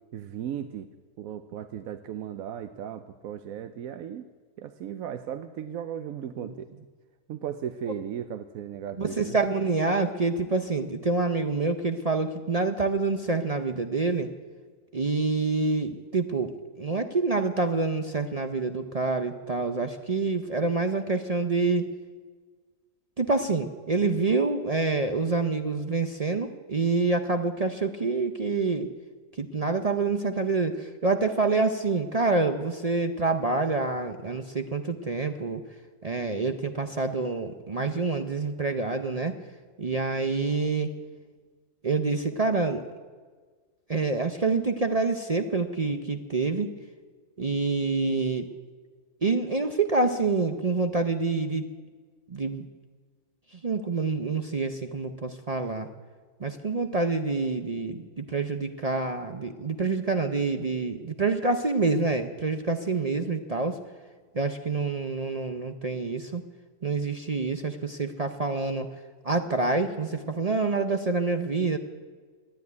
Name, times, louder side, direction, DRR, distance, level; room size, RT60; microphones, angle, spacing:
voice 1, 0.1-0.9 1.2-4.3 4.6-6.7 7.3-9.4, right 9 dB, 70° right, 9 dB, 1.0 m, -36 dB
voice 2, 9.0-14.3 14.9-21.9 23.2-28.9 29.4-35.6 36.0-39.4 39.8-40.9 41.8-42.8 43.9-46.7 47.4-48.5 49.2-51.7 52.3-52.7 53.5-55.9 56.4-63.8 64.3-66.4 66.8-68.9 69.2-71.8, right 3 dB, 50° right, 6 dB, 0.4 m, -27 dB
12.0 x 10.5 x 9.4 m, 1.5 s
omnidirectional pair, 1.7 m